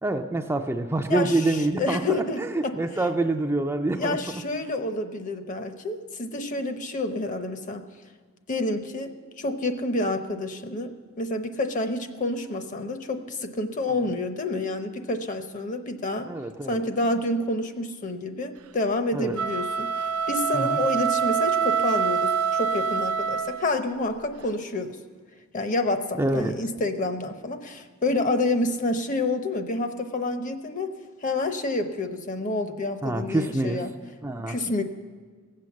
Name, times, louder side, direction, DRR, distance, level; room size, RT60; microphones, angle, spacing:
voice 1, 0.0-4.2 16.3-16.8 19.1-19.4 20.5-20.8 26.2-26.5 33.0-33.8 34.2-34.6, right 2 dB, 10° right, 5 dB, 0.4 m, -26 dB
voice 2, 1.1-2.8 3.9-7.8 8.5-16.3 16.7-25.0 25.5-30.9 31.2-33.9 34.5-34.8, left 2 dB, 35° left, 8 dB, 0.8 m, -28 dB
sound 1, 19.3-23.8, right 6 dB, 90° right, 0.5 m, -25 dB
17.0 x 7.7 x 7.1 m, 1.5 s
head